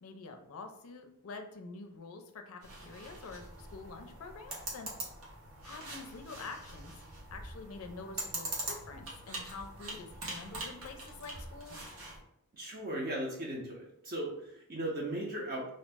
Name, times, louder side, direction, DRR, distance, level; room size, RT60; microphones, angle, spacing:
voice 1, 0.0-4.9 5.6-6.9 7.3-11.9, left 4 dB, 75° left, 5 dB, 0.4 m, -47 dB
sound 1, 2.6-12.2, right 2 dB, 80° right, 0.9 m, -43 dB
voice 2, 12.5-15.7, right 1 dB, 45° right, -3 dB, 0.6 m, -37 dB
2.6 x 2.0 x 3.3 m, 0.74 s
head